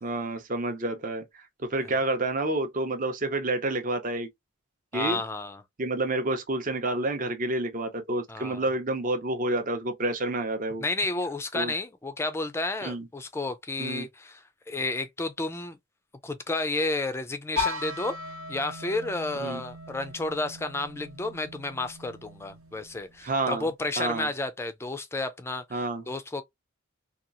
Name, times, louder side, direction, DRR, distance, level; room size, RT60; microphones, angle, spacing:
voice 1, 0.0-4.3 4.9-5.2 5.8-10.8 11.5-11.7 12.8-13.1 13.8-14.1 19.4-19.6 23.2-23.7 24.0-24.3 25.7-26.0, right 2 dB, 40° right, 0.6 m, -29 dB
voice 2, 4.9-5.6 8.3-8.6 10.8-15.8 16.2-18.2 18.5-26.4, left 2 dB, 10° left, 0.3 m, -31 dB
sound 1, 17.6-23.4, left 3 dB, 90° right, 1.3 m, -37 dB
2.8 x 2.3 x 2.5 m
head